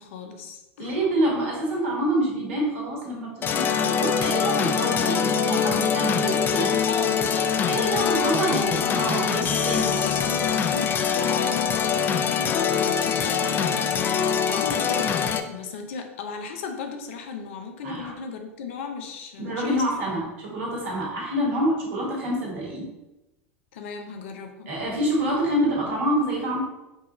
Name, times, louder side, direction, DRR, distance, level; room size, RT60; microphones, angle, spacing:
voice 1, 0.0-1.0 6.9-8.8 9.3-19.8 23.7-24.7, left 5 dB, 65° left, 5 dB, 0.6 m, -36 dB
voice 2, 0.8-6.7 7.7-10.0 17.8-18.1 19.4-22.8 24.7-26.6, right 1 dB, 65° right, -3 dB, 1.5 m, -27 dB
sound 1, 3.4-15.4, left 7 dB, 30° left, 0.3 m, -23 dB
4.7 x 2.5 x 2.9 m, 0.97 s
hypercardioid pair, 90°, 7 cm